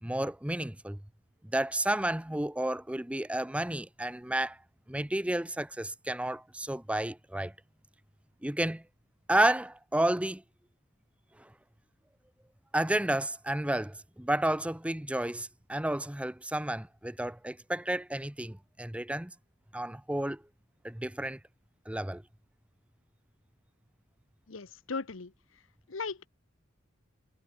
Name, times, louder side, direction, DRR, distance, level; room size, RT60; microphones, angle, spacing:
voice 1, 0.0-1.0 1.4-4.6 4.9-7.5 8.4-8.8 9.3-10.4 11.4-11.5 12.7-19.3 19.7-20.4 20.8-21.4 21.9-22.2, right 1 dB, 5° right, 0.7 m, -31 dB
voice 2, 24.5-25.3 25.9-26.3, left 4 dB, 75° left, 1.0 m, -37 dB
head